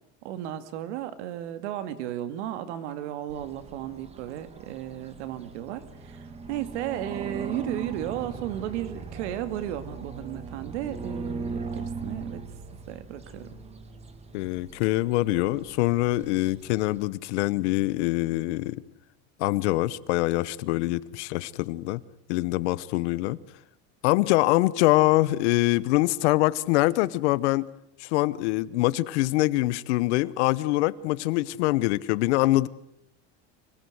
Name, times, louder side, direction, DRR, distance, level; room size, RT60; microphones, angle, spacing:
voice 1, 0.2-12.4 12.9-13.6, right 12 dB, 85° right, 2.3 m, -34 dB
sound 1, 3.3-17.1, right 4 dB, 20° right, 2.0 m, -39 dB
voice 2, 14.3-18.8 19.4-22.0 22.3-23.4 24.0-27.7 28.0-32.7, left 18 dB, 80° left, 1.1 m, -24 dB
25.5 x 17.5 x 8.0 m
cardioid pair, 160°, 34 cm